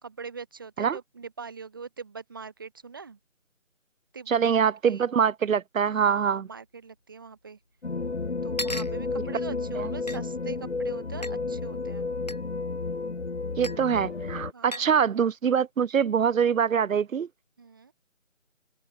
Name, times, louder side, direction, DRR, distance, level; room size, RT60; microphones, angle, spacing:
voice 1, 0.0-3.2 4.1-4.6 4.8-5.0 5.8-7.6 8.4-12.1 14.5-15.0 17.6-17.9, right 5 dB, 15° right, 1.6 m, -42 dB
voice 2, 4.3-6.5 9.8-9.9 13.6-17.3, right 7 dB, 90° right, 0.5 m, -24 dB
sound 1, 6.6-6.7 6.8-6.9 7.8-7.9 8.6-9.0 10.1-10.2 11.2-11.3 12.3-12.4 13.6-13.8 14.7-14.9, left 1 dB, 35° left, 0.6 m, -35 dB
sound 2, 7.8-14.5, left 3 dB, 55° left, 1.4 m, -32 dB
figure-of-eight pair, 160°, 39 cm